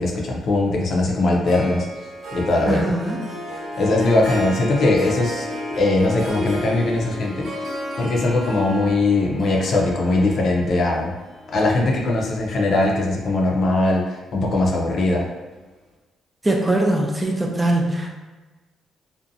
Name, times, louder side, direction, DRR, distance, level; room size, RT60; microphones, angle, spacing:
voice 1, 0.0-1.9 2.3-2.9 3.8-5.5 5.8-7.5 8.0-11.1 11.5-15.2, left 2 dB, 60° left, -1 dB, 0.5 m, -20 dB
Harp, 1.5-12.9, equal, 65° right, 0.9 m, -33 dB
voice 2, 2.7-3.2 16.4-18.1, right 1 dB, 15° right, 0 dB, 0.4 m, -21 dB
2.6 x 2.1 x 2.6 m, 1.2 s
cardioid pair, 90°, 0 cm